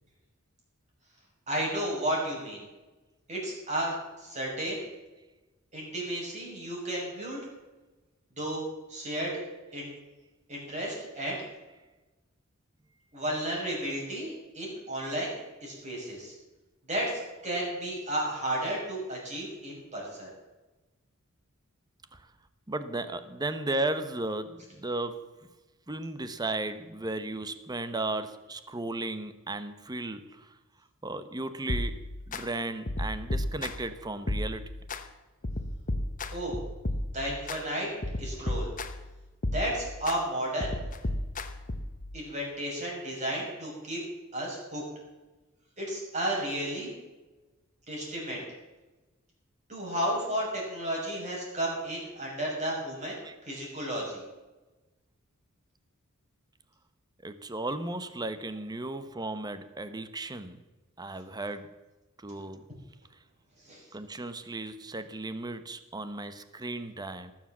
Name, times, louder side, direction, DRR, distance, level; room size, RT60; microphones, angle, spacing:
voice 1, 1.5-2.6 3.3-4.8 5.7-7.4 8.4-9.4 9.7-9.9 10.5-11.4 13.1-16.3 16.9-20.3 36.3-36.6 37.1-37.9 38.2-38.7 39.5-40.8 42.1-44.0 44.3-44.8 45.8-46.9 47.9-48.4 49.7-53.2 53.4-54.3 63.6-63.8, right 1 dB, 35° right, -3 dB, 6.3 m, -33 dB
voice 2, 22.7-25.3 25.9-30.5 31.0-32.0 32.3-34.6 53.2-53.4 57.2-60.6 61.0-61.8 62.2-62.6 63.9-67.3, right 2 dB, 20° right, 11 dB, 0.9 m, -35 dB
sound 1, 31.7-32.4 32.9-33.9 34.3-35.0 35.4-37.6 38.0-39.1 39.4-40.2 40.6-42.0, left 1 dB, 40° left, 1.1 m, -33 dB
18.5 x 7.5 x 7.3 m, 1.1 s
head